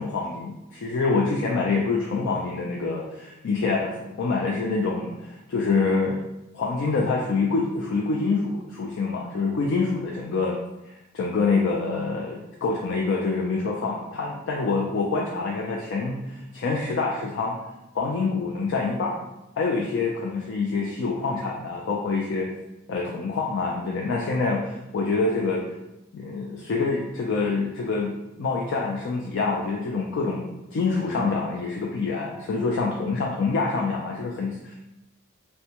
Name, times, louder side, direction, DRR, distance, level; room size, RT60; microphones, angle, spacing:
voice 1, 0.0-6.2 6.5-10.6 10.9-17.6 17.9-19.2 19.6-22.5 22.9-25.6 26.1-30.5 30.7-34.9, left 4 dB, 55° left, -1 dB, 0.3 m, -26 dB
3.3 x 2.1 x 2.8 m, 0.95 s
head